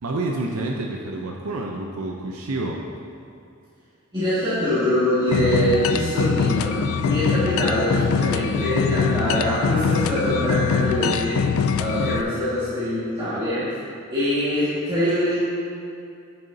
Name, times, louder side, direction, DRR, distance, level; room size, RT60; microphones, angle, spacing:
voice 1, 0.0-2.8, right 2 dB, 70° right, 0 dB, 0.6 m, -28 dB
voice 2, 4.1-11.5 11.8-13.7 14.1-15.4, equal, 20° right, -13 dB, 1.8 m, -23 dB
sound 1, 5.3-12.2, left 6 dB, 65° left, 0.3 m, -23 dB
10.5 x 6.9 x 2.7 m, 2.5 s
head